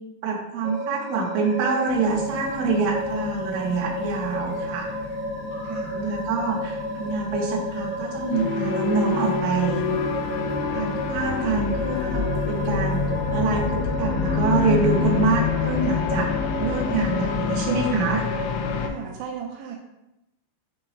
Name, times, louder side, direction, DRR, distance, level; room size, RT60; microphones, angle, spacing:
voice 1, 0.2-4.9 5.9-9.9 10.7-16.3 16.6-18.2, right 4 dB, 70° right, -1 dB, 2.5 m, -26 dB
sound 1, 0.6-18.9, left 1 dB, 35° left, 1.8 m, -32 dB
sound 2, 1.9-13.7, left 5 dB, 65° left, 1.7 m, -39 dB
voice 2, 5.6-6.0 18.8-19.8, right 7 dB, 85° right, 0 dB, 2.8 m, -36 dB
sound 3, 8.3-18.9, left 6 dB, 90° left, 3.1 m, -26 dB
10.5 x 5.3 x 2.2 m, 0.92 s
omnidirectional pair, 5.3 m